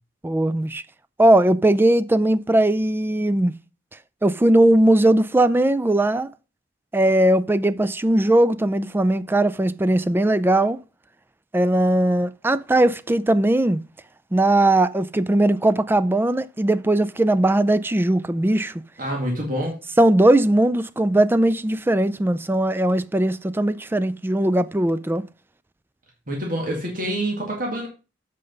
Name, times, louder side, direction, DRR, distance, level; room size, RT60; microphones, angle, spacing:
voice 1, 0.2-0.8 1.2-3.5 4.2-6.3 6.9-10.8 11.5-13.8 14.3-18.7 20.0-25.2, right 1 dB, 10° right, 0.3 m, -19 dB
voice 2, 19.0-19.8 26.3-27.9, right 1 dB, 45° right, 2.1 m, -26 dB
7.8 x 5.2 x 5.3 m
head